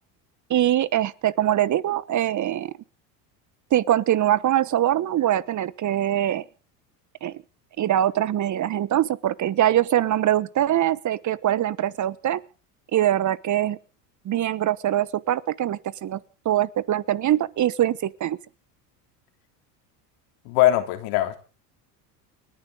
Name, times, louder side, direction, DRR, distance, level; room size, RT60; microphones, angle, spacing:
voice 1, 0.5-2.7 3.7-6.4 7.2-7.4 7.8-12.4 12.9-13.8 14.2-16.2 16.4-18.4, right 12 dB, 40° right, 1.1 m, -23 dB
voice 2, 20.4-21.5, left 14 dB, 70° left, 3.5 m, -21 dB
30.0 x 10.5 x 3.8 m
hypercardioid pair, 90°, 47 cm